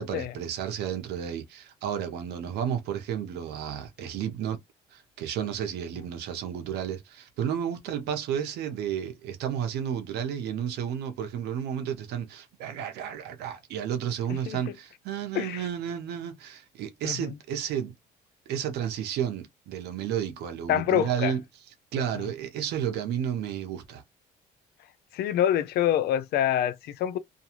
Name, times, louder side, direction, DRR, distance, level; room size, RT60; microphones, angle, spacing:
voice 1, 0.0-4.6 4.9-17.9 18.5-21.4 21.9-24.0, right 9 dB, 80° right, 0.9 m, -32 dB
voice 2, 17.0-17.4 20.7-21.3 25.1-27.2, left 10 dB, 70° left, 0.5 m, -26 dB
2.5 x 2.3 x 2.9 m
cardioid pair, 110°, 17 cm